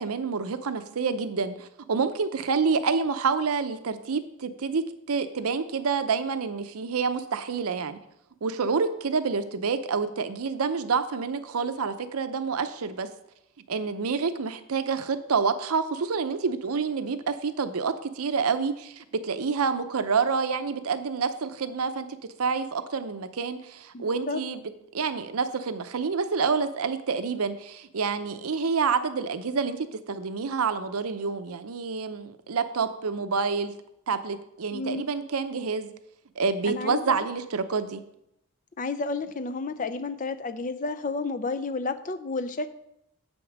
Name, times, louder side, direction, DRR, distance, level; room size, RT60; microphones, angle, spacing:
voice 1, 0.0-8.0 8.4-13.1 13.7-22.1 22.4-24.6 24.9-33.7 34.1-35.9 36.4-38.0, right 5 dB, 80° right, 11 dB, 0.6 m, -28 dB
voice 2, 23.9-24.4 34.7-35.0 36.6-37.3 38.8-42.7, left 3 dB, 35° left, 10 dB, 0.5 m, -31 dB
7.8 x 5.3 x 6.0 m, 0.80 s
head